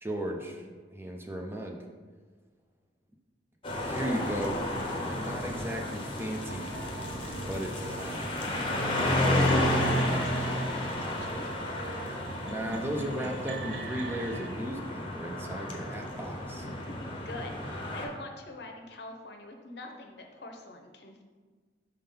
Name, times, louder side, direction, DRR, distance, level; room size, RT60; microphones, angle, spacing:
voice 1, 0.0-1.8 3.8-4.6 5.2-6.7 7.5-8.2 12.5-16.6, equal, 15° right, 1 dB, 0.6 m, -36 dB
sound 1, 3.6-18.0, left 1 dB, 30° left, 0.8 m, -31 dB
sound 2, 6.5-14.5, right 3 dB, 75° right, 0.5 m, -43 dB
voice 2, 9.7-11.6 16.6-21.2, left 2 dB, 65° left, 3 dB, 0.8 m, -45 dB
5.4 x 3.6 x 5.6 m, 1.4 s
head